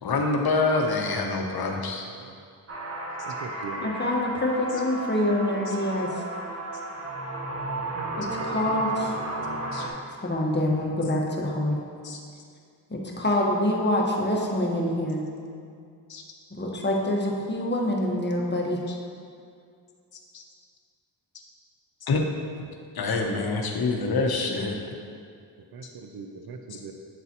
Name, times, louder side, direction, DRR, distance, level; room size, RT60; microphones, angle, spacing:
voice 1, 0.0-2.0 5.7-5.8 9.7-9.9 12.0-12.2 16.1-16.2 18.9-19.0 20.3-20.4 22.1-22.3 22.9-24.8 26.7-26.8, left 3 dB, 55° left, 2 dB, 0.8 m, -26 dB
sound 1, 2.7-9.9, right 1 dB, 35° right, 1.0 m, -33 dB
voice 2, 3.2-3.9 25.7-26.9, right 4 dB, 55° right, 5 dB, 0.6 m, -40 dB
voice 3, 3.8-6.1 8.2-9.1 10.2-11.8 12.9-15.2 16.6-18.8, left 1 dB, 25° left, -2 dB, 1.1 m, -26 dB
8.4 x 3.9 x 2.9 m, 2.3 s
cardioid pair, 50°, 44 cm